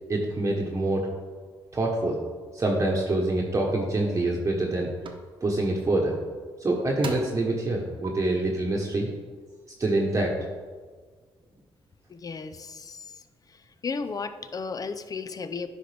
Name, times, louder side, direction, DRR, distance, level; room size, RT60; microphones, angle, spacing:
voice 1, 0.1-1.1 1.7-2.2 2.5-4.9 5.4-6.2 6.6-9.1 9.8-10.3, right 2 dB, 30° right, -1 dB, 1.1 m, -25 dB
sound 1, 3.7-3.8 4.3-4.7 5.0-5.2 6.4-6.5 7.0-7.5 8.0-8.1, right 4 dB, 55° right, 0.9 m, -38 dB
voice 2, 12.1-13.2 13.5-15.7, left 4 dB, 40° left, 10 dB, 0.6 m, -35 dB
9.9 x 5.2 x 3.4 m, 1.5 s
cardioid pair, 75°, 10 cm